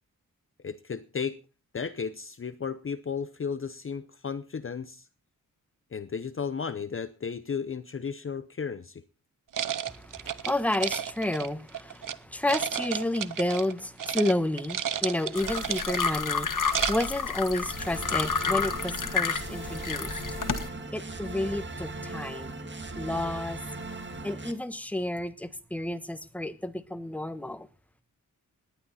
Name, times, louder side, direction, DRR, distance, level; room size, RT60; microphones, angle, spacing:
voice 1, 0.6-1.4 1.7-5.1 5.9-9.0, left 6 dB, 40° left, 0.7 m, -34 dB
sound 1, 9.5-12.2 12.5-13.7 14.0-14.3 14.6-16.1 16.5-17.2, right 9 dB, 70° right, 0.9 m, -32 dB
voice 2, 9.9-20.2 20.9-22.5 22.9-23.6 24.2-27.7, left 1 dB, 5° left, 1.2 m, -31 dB
sound 2, 15.3-20.7, left 5 dB, 65° left, 1.7 m, -30 dB
sound 3, 17.7-24.5, right 2 dB, 35° right, 1.8 m, -38 dB
18.5 x 11.5 x 4.2 m
wide cardioid pair, 150°, 34 cm